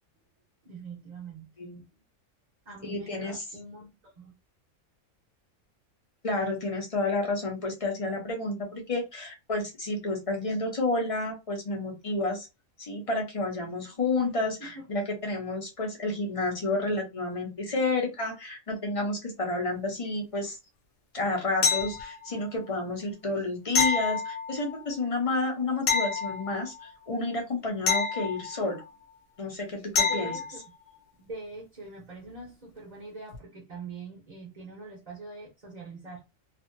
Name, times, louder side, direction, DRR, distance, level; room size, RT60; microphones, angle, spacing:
voice 1, 0.6-1.5 1.9-2.0 2.6-4.3 14.1-14.3 14.7-14.9 30.0-30.6 31.2-36.2, right 3 dB, 35° right, 0.9 m, -43 dB
voice 2, 2.8-3.4 6.2-12.5 12.8-20.6 21.1-28.8 29.4-30.3, left 2 dB, 30° left, 0.8 m, -30 dB
sound 1, 21.6-22.4 23.7-24.8 25.9-26.9 27.9-28.9 30.0-30.6 33.3-33.4, left 5 dB, 85° left, 1.0 m, -28 dB
2.7 x 2.6 x 2.6 m
omnidirectional pair, 1.3 m